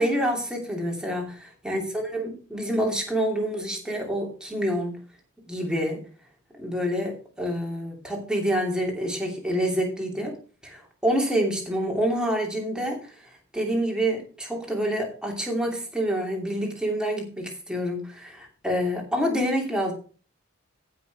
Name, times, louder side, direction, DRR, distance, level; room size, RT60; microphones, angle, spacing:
voice 1, 0.0-5.0 5.5-6.0 6.6-10.3 10.6-19.9, equal, 5° right, 0 dB, 2.8 m, -27 dB
15.0 x 6.0 x 4.7 m, 0.39 s
head